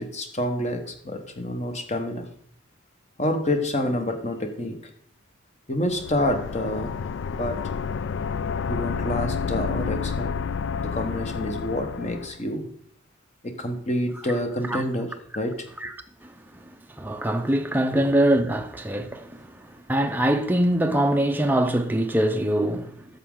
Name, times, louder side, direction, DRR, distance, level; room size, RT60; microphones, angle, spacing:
voice 1, 0.0-2.3 3.2-4.8 5.7-6.9 7.3-7.6 8.7-10.3 10.8-12.7 13.4-15.5 17.9-18.0, left 1 dB, 30° left, 1.1 m, -28 dB
sound 1, 5.9-12.4, left 6 dB, 55° left, 0.3 m, -30 dB
voice 2, 16.7-23.0, right 1 dB, 10° right, 0.5 m, -23 dB
11.0 x 7.2 x 3.8 m
head